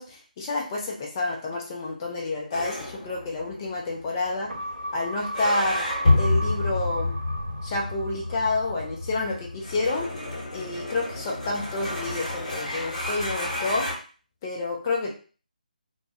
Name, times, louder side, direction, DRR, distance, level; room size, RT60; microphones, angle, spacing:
voice 1, 0.0-4.5 4.9-5.9 6.2-7.1 7.6-10.1 10.5-13.9 14.4-15.1, left 2 dB, 25° left, -1 dB, 0.5 m, -29 dB
sound 1, 2.5-13.9, left 2 dB, 50° left, 1.0 m, -29 dB
sound 2, 4.5-9.2 9.5-9.6, right 1 dB, 85° right, 0.4 m, -36 dB
2.2 x 2.1 x 2.8 m, 0.37 s
figure-of-eight pair, 145°, 5 cm